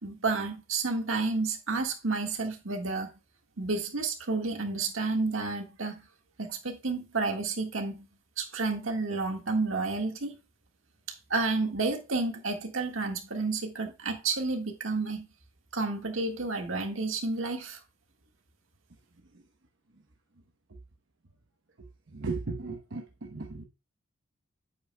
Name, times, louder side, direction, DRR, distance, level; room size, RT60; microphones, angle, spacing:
voice 1, 0.0-3.1 3.6-6.0 6.4-8.1 8.4-10.4 11.3-15.3 15.7-17.8, right 3 dB, 80° right, 1.7 m, -30 dB
voice 2, 22.1-23.6, right 3 dB, 65° right, 1.0 m, -36 dB
8.5 x 7.8 x 2.2 m
head